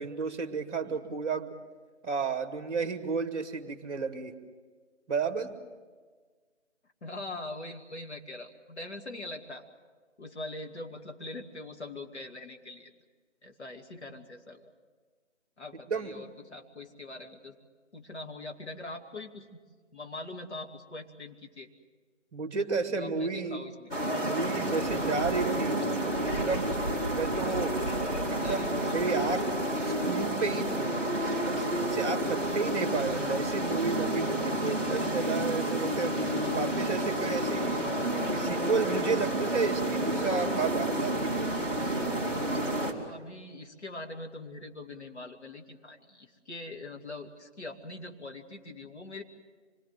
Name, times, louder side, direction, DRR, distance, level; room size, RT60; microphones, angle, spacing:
voice 1, 0.0-1.5 2.0-4.3 5.1-5.5 15.9-16.2 22.3-23.6 24.2-25.8 26.3-26.8 27.1-27.8 28.3-29.5 29.8-30.9 31.4-37.9 38.4-41.5 41.8-41.9, right 4 dB, 20° right, 7 dB, 1.8 m, -32 dB
voice 2, 7.0-9.6 10.2-12.9 13.4-14.7 15.6-17.5 17.9-19.5 19.9-21.7 22.9-23.9 27.3-27.7 28.4-28.9 33.0-33.4 36.3-36.6 43.0-49.2, left 2 dB, 65° left, 2 dB, 2.8 m, -42 dB
sound 1, 23.9-42.9, right 1 dB, 10° left, 2.5 m, -30 dB
25.5 x 22.0 x 7.7 m, 1.5 s
figure-of-eight pair, 155°, 37 cm